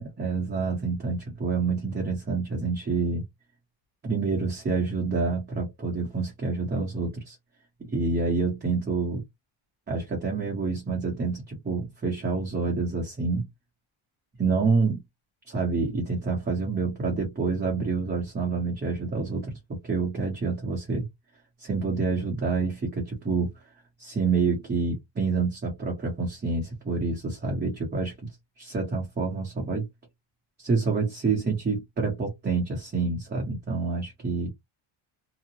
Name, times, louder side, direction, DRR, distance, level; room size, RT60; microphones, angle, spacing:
voice 1, 0.0-3.2 4.0-7.4 7.9-9.2 9.9-13.4 14.4-15.0 15.5-19.5 19.8-21.1 21.6-23.5 24.0-28.1 28.6-29.9 30.6-34.5, right 4 dB, 20° right, 0.8 m, -27 dB
2.8 x 2.1 x 2.8 m
cardioid pair, 170°, 50 cm